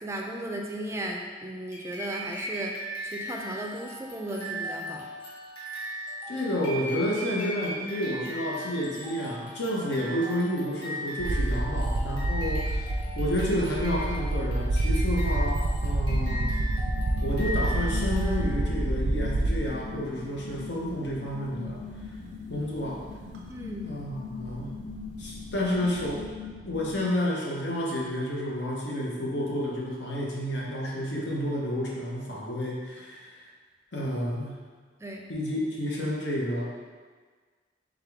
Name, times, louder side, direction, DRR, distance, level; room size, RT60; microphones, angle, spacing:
voice 1, 0.0-5.1 23.5-24.0 35.0-35.3, right 1 dB, 15° right, 1 dB, 0.3 m, -36 dB
sound 1, 1.7-18.8, equal, 25° left, 1.1 m, -38 dB
voice 2, 6.3-16.5 17.2-21.8 22.5-23.0 23.8-24.8 25.2-26.3 26.6-33.3 33.9-34.6 35.3-36.6, equal, 80° left, -4 dB, 0.9 m, -30 dB
sound 2, 11.2-20.0 21.1-21.2 23.3-23.4 23.7-26.2, right 2 dB, 85° right, 0.4 m, -28 dB
sound 3, 16.1-27.1, left 4 dB, 60° left, 0.5 m, -41 dB
3.6 x 3.5 x 3.5 m, 1.5 s
head